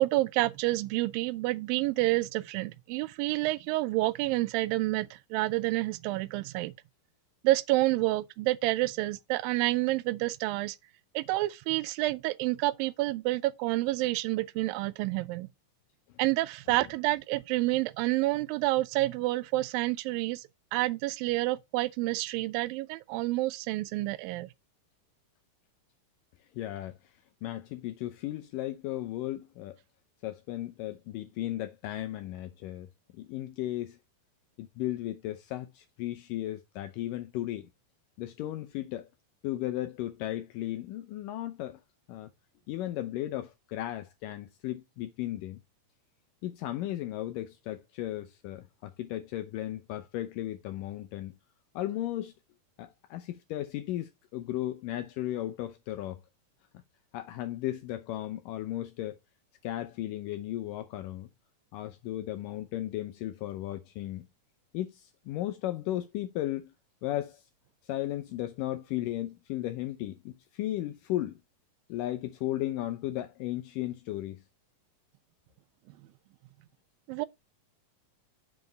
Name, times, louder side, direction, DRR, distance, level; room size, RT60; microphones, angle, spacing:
voice 1, 0.0-6.7 7.4-10.8 11.2-15.5 16.2-20.4 20.7-24.5 77.1-77.3, right 18 dB, 90° right, 2.3 m, -29 dB
voice 2, 26.5-27.0 27.4-29.7 30.2-32.9 33.1-34.0 34.6-37.7 38.2-39.1 39.4-41.8 42.1-42.3 42.7-45.6 46.4-51.3 51.8-52.3 52.8-56.2 57.1-59.2 59.6-61.3 61.7-64.3 64.7-66.7 67.0-67.4 67.9-71.4 71.9-74.4, left 14 dB, 80° left, 2.3 m, -35 dB
7.2 x 5.3 x 3.8 m
omnidirectional pair, 4.0 m